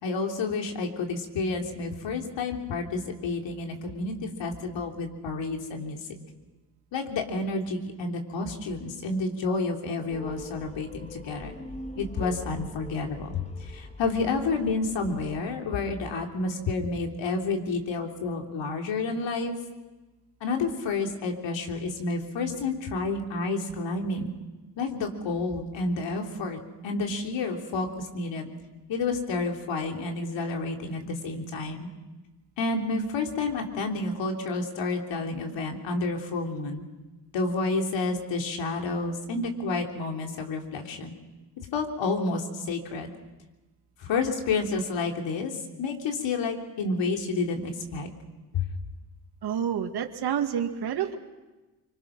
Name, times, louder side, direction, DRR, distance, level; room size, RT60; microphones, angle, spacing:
voice 1, 0.0-6.0 6.9-11.5 12.0-13.4 13.7-19.6 20.4-24.3 24.8-28.5 28.9-31.9 32.6-36.8 37.3-41.1 41.7-43.1 44.0-45.5 45.8-48.1 48.5-48.7, left 3 dB, 65° left, 2 dB, 3.7 m, -30 dB
sound 1, 10.1-15.4, left 1 dB, 15° left, 2.0 m, -43 dB
voice 2, 49.4-51.2, right 8 dB, 55° right, 4 dB, 2.2 m, -28 dB
25.5 x 25.0 x 6.2 m, 1.1 s
supercardioid pair, 65°, 47 cm